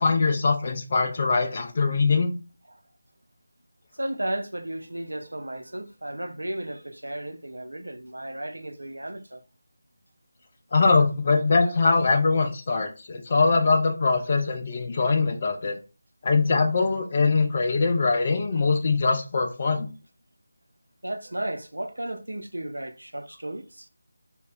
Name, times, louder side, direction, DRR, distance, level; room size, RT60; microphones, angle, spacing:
voice 1, 0.0-2.3 10.7-15.8 16.2-19.9, left 4 dB, 35° left, 0.5 m, -22 dB
voice 2, 4.0-9.4 21.0-23.9, right 1 dB, 70° right, 0.4 m, -34 dB
2.1 x 2.0 x 3.7 m
figure-of-eight pair, 160°, 0 cm